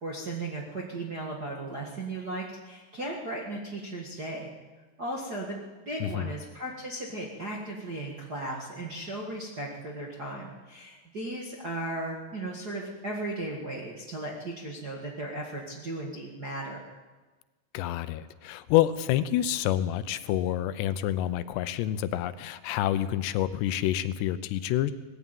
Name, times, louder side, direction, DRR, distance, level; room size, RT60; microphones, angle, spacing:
voice 1, 0.0-4.5 5.0-16.8, right 2 dB, 40° right, -2 dB, 1.4 m, -36 dB
voice 2, 17.7-24.9, left 12 dB, 85° left, 13 dB, 2.9 m, -28 dB
19.0 x 15.0 x 9.1 m, 1.3 s
omnidirectional pair, 4.9 m